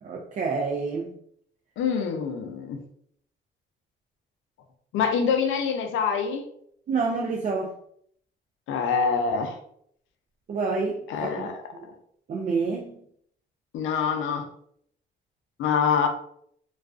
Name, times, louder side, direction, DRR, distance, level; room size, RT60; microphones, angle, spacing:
voice 1, 0.0-1.1 6.9-7.8 10.5-11.5 11.7-11.8 12.3-13.0, right 4 dB, 40° right, 0 dB, 0.4 m, -28 dB
voice 2, 1.8-2.8 4.9-6.4 8.7-9.6 11.1-11.6 13.7-14.5 15.6-16.1, left 6 dB, 80° left, 6 dB, 0.5 m, -25 dB
2.3 x 2.2 x 2.4 m, 0.66 s
cardioid pair, 90°, 20 cm